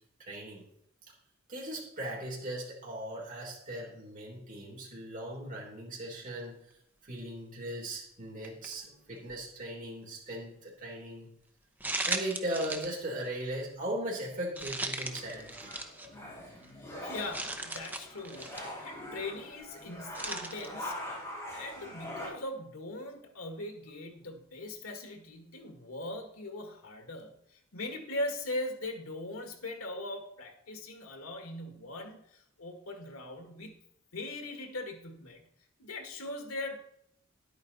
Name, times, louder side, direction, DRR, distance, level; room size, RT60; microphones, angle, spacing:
voice 1, 0.2-0.7 1.5-6.6 7.0-11.3 12.0-15.7, right 1 dB, 40° right, -4 dB, 3.4 m, -38 dB
sound 1, 8.4-8.7 9.3-9.4 11.8-12.9 13.2-13.4 14.6-16.1 16.6-16.7 17.3-18.7 20.1-20.7, right 2 dB, 10° right, 0.7 m, -37 dB
sound 2, 15.0-22.3, left 1 dB, 15° left, 4.3 m, -43 dB
voice 2, 17.0-21.0 21.5-33.9 34.1-35.5 35.8-36.8, left 2 dB, 90° left, 5 dB, 1.6 m, -40 dB
10.5 x 8.7 x 4.0 m, 0.73 s
head